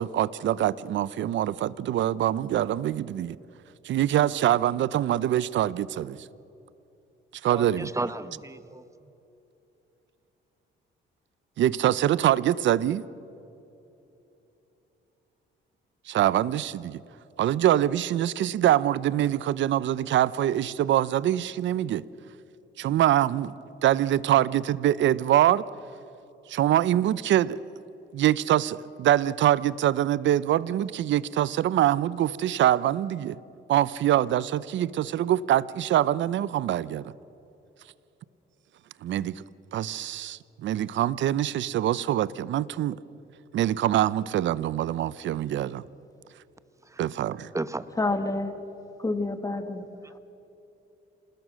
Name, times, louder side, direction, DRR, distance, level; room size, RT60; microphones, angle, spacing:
voice 1, 0.0-3.4 3.8-6.2 7.4-7.9 11.6-13.0 16.1-17.0 17.4-22.0 22.8-23.5 23.8-25.6 26.5-27.6 28.1-33.4 33.7-37.0 39.0-39.4 39.7-43.0 43.5-45.8 47.0-47.5, right 12 dB, 70° right, 0.7 m, -24 dB
voice 2, 7.5-8.8 46.8-47.0 47.5-47.9 49.5-50.2, right 2 dB, 15° right, 1.0 m, -34 dB
voice 3, 48.0-48.5 49.0-49.8, left 2 dB, 15° left, 1.9 m, -28 dB
27.0 x 20.0 x 6.3 m
cardioid pair, 90°, 20 cm